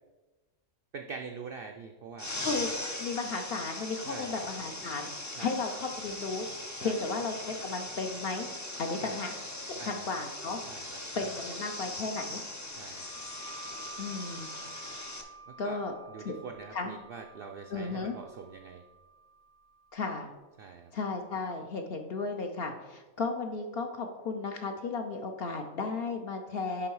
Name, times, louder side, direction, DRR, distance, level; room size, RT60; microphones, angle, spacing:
voice 1, 0.9-2.6 4.0-4.4 5.3-5.6 6.8-7.1 9.0-9.2 9.8-10.1 10.7-11.0 12.8-13.1 15.5-15.8 16.1-18.8 20.6-20.9, right 5 dB, 70° right, 4 dB, 0.5 m, -44 dB
sound 1, 2.2-15.2, left 2 dB, 30° left, 0.3 m, -40 dB
voice 2, 3.0-6.5 6.8-8.5 8.8-9.3 9.7-10.6 11.1-12.4 14.0-14.5 15.6-15.9 16.2-16.3 16.7-16.9 17.7-18.2 19.9-20.3 20.9-26.9, left 4 dB, 55° left, 4 dB, 0.7 m, -34 dB
sound 2, 12.8-20.1, right 3 dB, 80° left, 1.4 m, -51 dB
10.0 x 3.5 x 4.7 m, 1.2 s
omnidirectional pair, 1.5 m